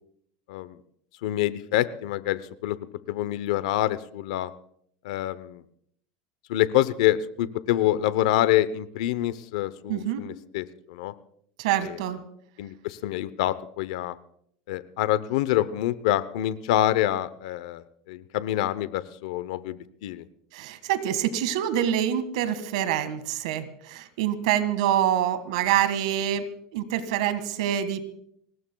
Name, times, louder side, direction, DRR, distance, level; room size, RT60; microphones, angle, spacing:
voice 1, 1.2-2.8 3.1-4.5 5.0-5.6 6.5-11.1 11.8-12.0 12.6-14.2 14.7-20.2, left 13 dB, 80° left, 15 dB, 0.7 m, -26 dB
voice 2, 9.9-10.2 11.6-12.2 20.5-26.4 26.7-28.1, right 10 dB, 80° right, 12 dB, 1.8 m, -26 dB
24.5 x 19.0 x 2.3 m, 0.67 s
supercardioid pair, 130°, 3 cm